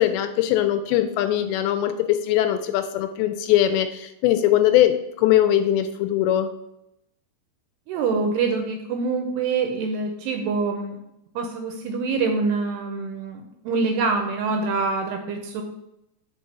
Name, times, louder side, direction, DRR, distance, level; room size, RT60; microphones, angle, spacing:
voice 1, 0.0-6.5, left 12 dB, 85° left, 8 dB, 2.6 m, -21 dB
voice 2, 7.9-11.0 11.4-15.6, right 4 dB, 85° right, 3 dB, 2.5 m, -25 dB
5.9 x 4.7 x 5.3 m, 0.84 s
omnidirectional pair, 5.2 m